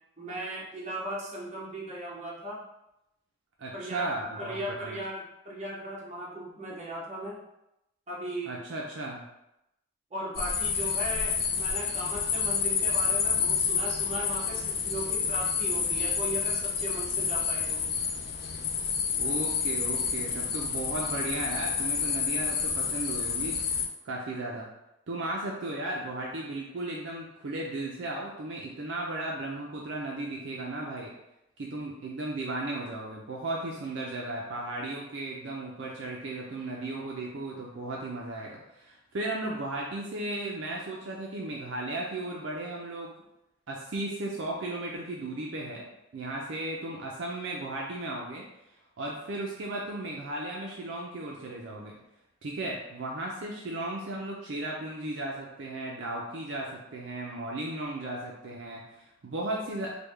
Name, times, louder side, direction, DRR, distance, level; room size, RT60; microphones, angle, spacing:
voice 1, 0.2-2.6 3.7-7.4 8.1-8.9 10.1-17.8, right 1 dB, 35° right, -5 dB, 0.8 m, -37 dB
voice 2, 3.6-5.0 8.5-9.2 19.2-23.6 24.0-24.7 25.1-31.1 31.6-43.1 43.7-45.8 46.1-48.4 49.0-52.0 52.4-59.9, right 2 dB, 65° right, -2 dB, 0.4 m, -35 dB
sound 1, 10.3-23.9, left 6 dB, 50° left, 0.3 m, -29 dB
3.4 x 2.1 x 3.2 m, 0.88 s
head